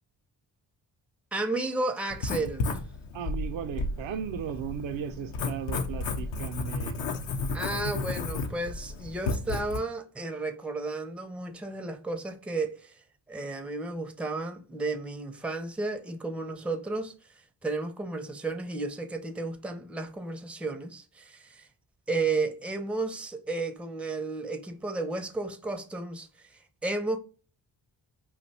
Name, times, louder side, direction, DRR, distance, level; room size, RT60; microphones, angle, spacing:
voice 1, 1.3-2.7 7.5-13.0 13.3-17.1 17.6-21.7 22.1-27.2, right 3 dB, 5° right, 0.5 m, -33 dB
Writing, 2.1-9.8, left 3 dB, 65° left, 0.7 m, -33 dB
voice 2, 3.1-6.9, right 8 dB, 75° right, 0.6 m, -36 dB
2.6 x 2.2 x 4.0 m
supercardioid pair, 45°, 48 cm